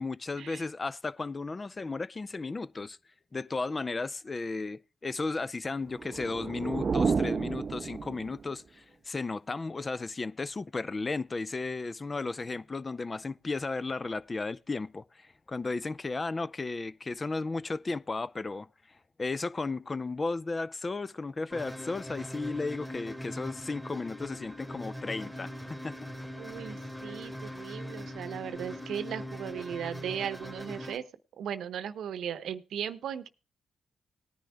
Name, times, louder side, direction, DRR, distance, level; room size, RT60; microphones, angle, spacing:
voice 1, 0.0-3.0 3.3-18.7 19.2-26.1, left 3 dB, 35° left, 0.5 m, -34 dB
sound 1, 5.9-8.6, right 5 dB, 50° right, 0.5 m, -31 dB
sound 2, 21.5-31.0, left 1 dB, 5° left, 2.2 m, -41 dB
voice 2, 26.4-31.1 31.4-33.3, right 9 dB, 75° right, 0.8 m, -37 dB
19.0 x 10.5 x 2.3 m
supercardioid pair, 50°, 0 cm